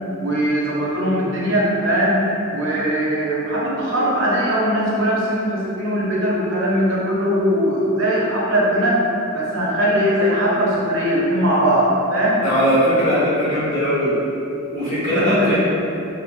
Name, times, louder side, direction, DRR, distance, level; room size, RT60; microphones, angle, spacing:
voice 1, 0.2-2.2 2.5-9.0 9.3-12.4 15.1-15.6, equal, 65° right, -5 dB, 0.7 m, -20 dB
voice 2, 12.4-14.1 14.7-15.6, equal, 40° left, -9 dB, 0.9 m, -19 dB
3.4 x 2.0 x 2.9 m, 2.8 s
head